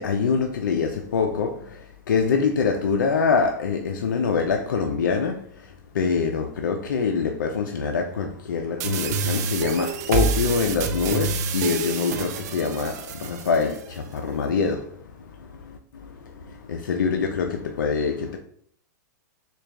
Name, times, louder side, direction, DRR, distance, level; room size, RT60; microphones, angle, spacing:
voice 1, 0.0-18.4, left 5 dB, 90° left, 0.4 m, -25 dB
sound 1, 8.8-13.8, right 5 dB, 60° right, 0.5 m, -27 dB
6.3 x 2.3 x 2.3 m
hypercardioid pair, 125°, 10 cm